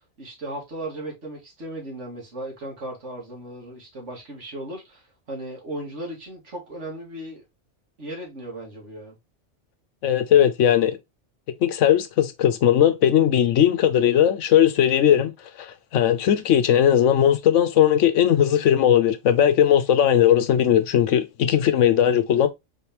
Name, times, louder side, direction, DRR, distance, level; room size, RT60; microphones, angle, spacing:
voice 1, 0.2-7.4 8.0-9.2, right 1 dB, 75° right, 2.3 m, -36 dB
voice 2, 10.0-11.0 11.6-15.3 15.6-22.5, left 10 dB, 90° left, 1.0 m, -18 dB
4.9 x 3.4 x 2.9 m
omnidirectional pair, 1.2 m